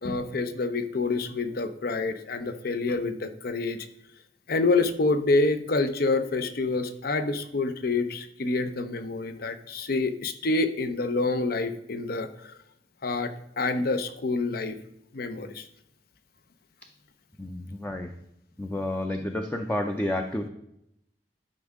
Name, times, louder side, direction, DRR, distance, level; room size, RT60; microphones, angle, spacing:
voice 1, 0.0-3.9 4.5-12.5 13.0-14.7 15.1-15.6, left 3 dB, 60° left, 9 dB, 0.7 m, -27 dB
voice 2, 17.4-18.1 18.6-20.5, left 1 dB, 10° left, 3 dB, 0.5 m, -30 dB
12.0 x 5.3 x 3.6 m, 0.80 s
head